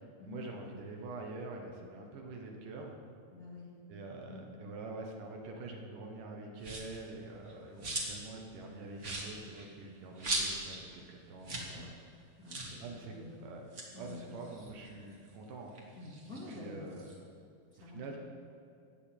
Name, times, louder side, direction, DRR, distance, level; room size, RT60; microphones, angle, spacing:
voice 1, 0.2-3.0 3.9-11.9 12.8-13.1 13.4-13.6 14.0-15.7 16.5-17.1 17.9-18.2, right 3 dB, 75° right, 1 dB, 2.7 m, -45 dB
voice 2, 3.3-3.7 4.2-4.5 11.5-11.9 12.4-13.4 13.9-14.2 15.9-16.8 17.7-18.2, left 2 dB, 30° left, -6 dB, 2.0 m, -48 dB
sound 1, 6.6-7.0 7.4-8.3 8.6-8.7 9.0-10.8 11.1-11.2 11.4-11.7 12.0-12.1 12.5-12.8 13.5-15.3 15.7-17.2, right 2 dB, 35° right, 1.2 m, -39 dB
15.0 x 9.2 x 4.5 m, 2.5 s
omnidirectional pair, 3.9 m